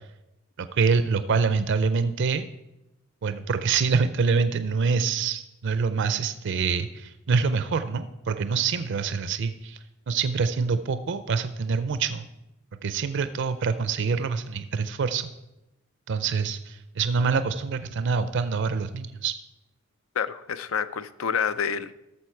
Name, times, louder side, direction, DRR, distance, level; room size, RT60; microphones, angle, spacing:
voice 1, 0.8-2.4 3.2-9.8 10.1-12.3 12.8-15.3 16.1-19.3, right 5 dB, 60° right, 11 dB, 0.5 m, -25 dB
voice 2, 20.1-21.9, left 7 dB, 75° left, 13 dB, 0.5 m, -28 dB
13.0 x 6.9 x 4.5 m, 0.92 s
head